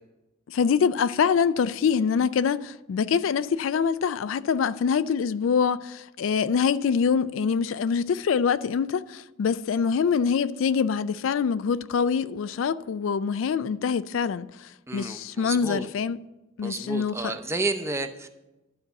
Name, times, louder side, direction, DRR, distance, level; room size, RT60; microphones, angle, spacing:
voice 1, 0.5-16.2 16.6-17.4, left 6 dB, 80° left, 0.3 m, -25 dB
voice 2, 14.9-15.9 16.6-18.5, right 2 dB, 15° right, 0.6 m, -31 dB
12.0 x 4.1 x 6.9 m
head